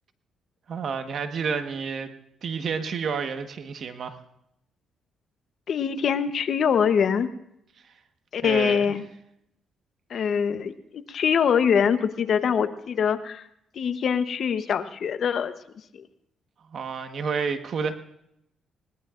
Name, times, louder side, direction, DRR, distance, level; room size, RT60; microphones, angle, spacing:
voice 1, 0.7-2.1 2.4-4.2 8.4-8.9 16.7-17.9, right 5 dB, 60° right, 7 dB, 1.3 m, -30 dB
voice 2, 5.7-7.3 8.3-9.0 10.1-13.4 13.7-15.5 15.9-16.0, left 7 dB, 60° left, 11 dB, 0.9 m, -24 dB
21.0 x 18.5 x 2.5 m, 0.77 s
cardioid pair, 90°, 0 cm